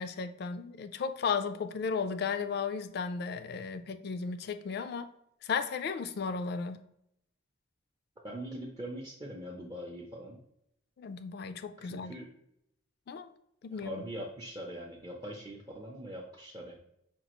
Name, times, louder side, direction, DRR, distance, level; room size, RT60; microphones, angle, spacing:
voice 1, 0.0-5.1 5.4-6.8 11.0-12.1 13.1-13.3 13.6-14.0, left 5 dB, 50° left, 10 dB, 0.3 m, -35 dB
voice 2, 8.2-10.4 11.8-12.3 13.8-16.8, right 1 dB, 20° right, -1 dB, 0.4 m, -42 dB
5.1 x 2.4 x 2.9 m, 0.76 s
head